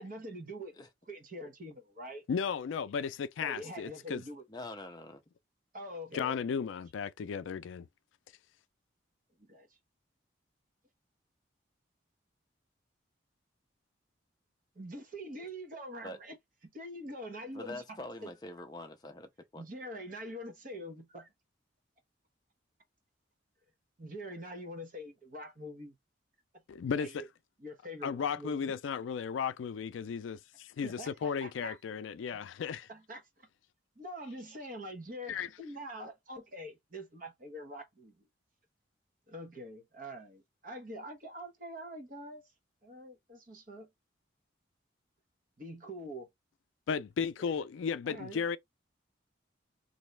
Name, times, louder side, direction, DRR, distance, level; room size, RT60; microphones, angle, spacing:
voice 1, 0.0-0.8 1.1-2.2 3.4-4.4 5.7-6.4 9.4-9.7 14.7-16.3 16.7-18.3 19.5-21.3 24.0-25.9 26.9-27.2 27.6-28.7 30.8-31.8 32.3-32.4 32.9-33.5 34.0-38.2 39.3-42.5 42.8-43.9 45.6-46.3 47.4-47.5 48.1-48.4, equal, 45° right, 1.0 m, -44 dB
voice 2, 2.3-4.2 6.1-7.9 26.7-27.2 28.0-32.9 35.3-35.5 46.9-48.6, left 6 dB, 80° left, 0.4 m, -35 dB
voice 3, 4.5-5.2 16.0-16.2 17.5-19.7, left 1 dB, 20° left, 0.4 m, -44 dB
3.0 x 2.7 x 3.2 m
head